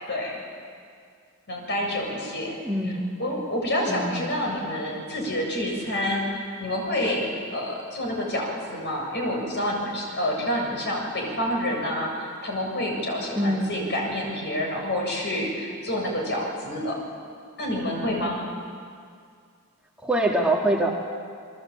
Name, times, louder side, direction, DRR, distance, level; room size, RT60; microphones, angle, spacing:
voice 1, 0.1-0.4 1.5-2.6 2.8-2.9 3.2-17.0 17.6-18.4, left 1 dB, 50° left, 0 dB, 7.3 m, -28 dB
voice 2, 2.6-3.2 3.9-4.2 13.4-13.8 20.0-20.9, right 1 dB, 5° right, -1 dB, 2.1 m, -24 dB
29.5 x 22.0 x 8.8 m, 2.2 s
head